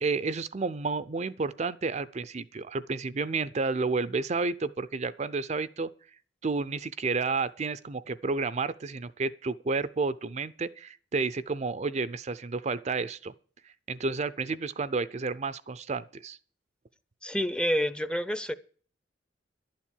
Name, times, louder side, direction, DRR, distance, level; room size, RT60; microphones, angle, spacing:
voice 1, 0.0-5.9 6.4-13.3 13.9-16.4, right 4 dB, 35° right, 0.5 m, -31 dB
voice 2, 17.2-18.5, equal, 5° left, 0.6 m, -28 dB
11.5 x 7.4 x 9.9 m
head